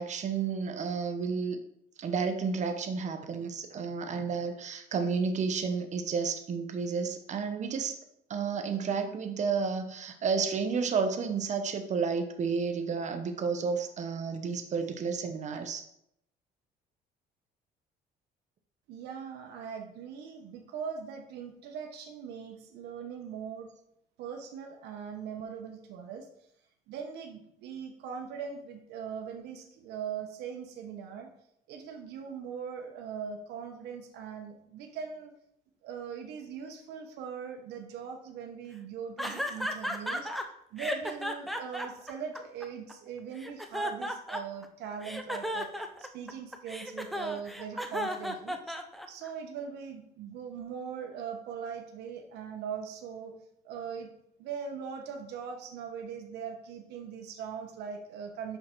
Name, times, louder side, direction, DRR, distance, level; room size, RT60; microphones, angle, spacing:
voice 1, 0.0-1.6 2.0-8.0 8.3-15.8, right 5 dB, 45° right, 7 dB, 1.0 m, -31 dB
voice 2, 18.9-23.7 24.2-26.3 26.9-31.3 31.7-35.3 35.8-40.3 40.7-45.7 46.0-48.8 49.1-53.3 53.6-54.1 54.4-58.6, right 7 dB, 80° right, 3 dB, 1.1 m, -40 dB
sound 1, 39.2-40.4 40.8-42.9 43.4-44.7 45.0-49.3, equal, ahead, 0.6 m, -34 dB
5.7 x 5.6 x 4.5 m, 0.73 s
cardioid pair, 110°, 17 cm